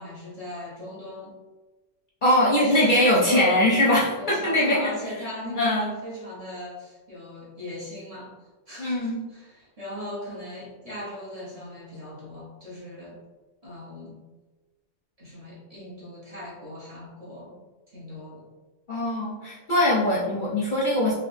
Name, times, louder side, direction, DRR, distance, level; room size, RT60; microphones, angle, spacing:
voice 1, 0.0-1.3 2.3-3.6 4.2-8.3 8.7-13.2 13.6-14.2 15.2-17.6 17.9-18.4, left 1 dB, 35° right, -6 dB, 0.9 m, -38 dB
voice 2, 2.2-4.9 5.6-5.9 8.8-9.2 18.9-21.1, left 1 dB, 55° left, -5 dB, 0.6 m, -22 dB
3.7 x 2.6 x 2.5 m, 1.2 s
omnidirectional pair, 1.2 m